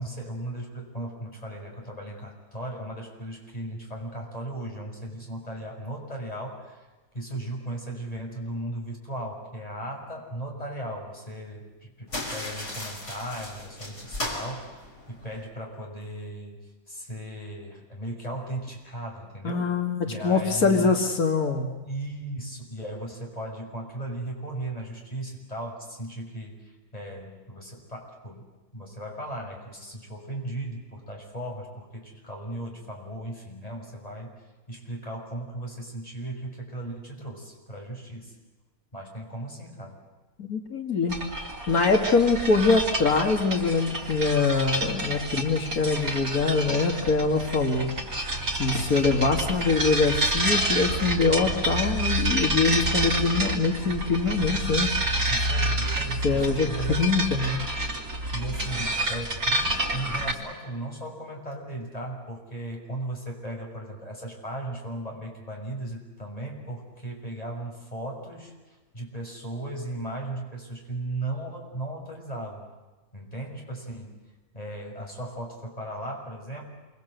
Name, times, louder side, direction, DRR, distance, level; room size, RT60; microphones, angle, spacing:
voice 1, 0.0-6.9 7.1-19.7 20.1-21.0 21.8-28.4 28.7-34.3 34.7-38.4 38.9-40.0 55.3-57.0 58.3-72.7 73.1-74.1 74.5-76.6, right 1 dB, 25° left, 0 dB, 6.4 m, -36 dB
sound 1, 12.1-15.5, left 1 dB, 55° left, 5.6 m, -36 dB
voice 2, 19.4-21.7 40.4-41.2 41.7-47.9 48.6-54.9 56.2-56.7 57.0-57.6, left 4 dB, 85° left, 3 dB, 2.6 m, -24 dB
sound 2, 41.1-60.3, right 1 dB, 80° right, 4.1 m, -29 dB
28.0 x 25.0 x 8.1 m, 1.2 s
omnidirectional pair, 1.5 m